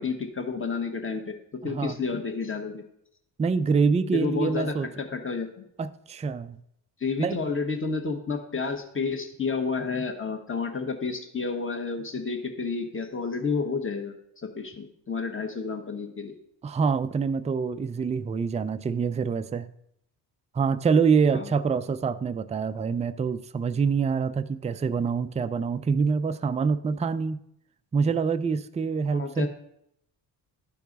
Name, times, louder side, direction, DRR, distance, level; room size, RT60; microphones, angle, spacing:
voice 1, 0.0-1.3 1.6-2.8 4.1-5.7 7.0-14.1 14.4-16.3 21.3-21.5 29.1-29.5, left 4 dB, 25° left, 4 dB, 1.5 m, -30 dB
voice 2, 1.6-2.0 3.4-4.9 5.8-6.6 7.2-7.4 16.6-19.7 20.5-27.4 27.9-29.5, right 5 dB, 15° right, 11 dB, 0.4 m, -25 dB
12.5 x 4.5 x 4.0 m, 0.76 s
supercardioid pair, 70°, 45 cm